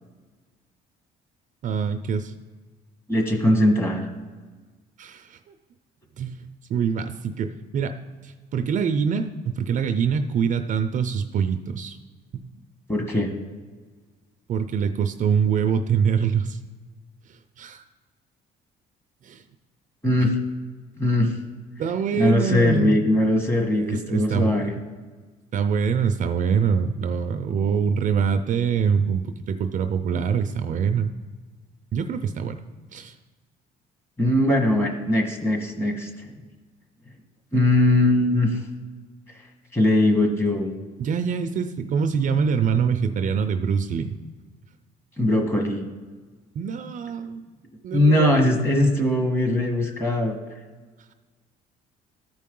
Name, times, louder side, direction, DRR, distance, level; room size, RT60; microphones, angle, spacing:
voice 1, 1.6-2.3 5.0-5.4 6.2-8.0 8.2-12.0 12.3-12.5 14.5-16.6 17.6-17.8 19.2-19.4 21.8-23.0 23.7-24.8 25.5-31.1 31.9-32.6 32.9-33.1 41.0-44.2 46.6-47.4 47.8-48.6, right 6 dB, 50° right, 9 dB, 0.5 m, -24 dB
voice 2, 3.1-4.1 12.9-13.3 20.0-20.4 21.0-21.4 22.1-24.7 34.2-36.1 37.5-38.6 39.7-40.7 45.2-45.9 47.9-50.4, left 1 dB, 15° left, 3 dB, 1.4 m, -20 dB
13.5 x 4.6 x 3.7 m, 1.4 s
cardioid pair, 110°, 17 cm